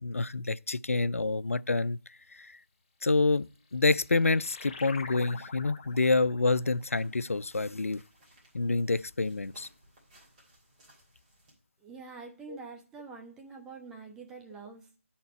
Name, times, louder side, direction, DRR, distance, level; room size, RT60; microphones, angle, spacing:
voice 1, 0.0-2.0 2.3-2.6 3.0-3.4 3.7-8.0 8.5-9.7 12.5-12.6, left 3 dB, 85° left, 0.3 m, -27 dB
sound 1, 3.5-8.6, left 4 dB, 30° left, 0.7 m, -47 dB
sound 2, 6.5-11.5, right 1 dB, 25° right, 3.0 m, -62 dB
voice 2, 11.8-15.0, right 4 dB, 5° right, 0.7 m, -46 dB
10.5 x 4.4 x 4.3 m
figure-of-eight pair, 155°, 7 cm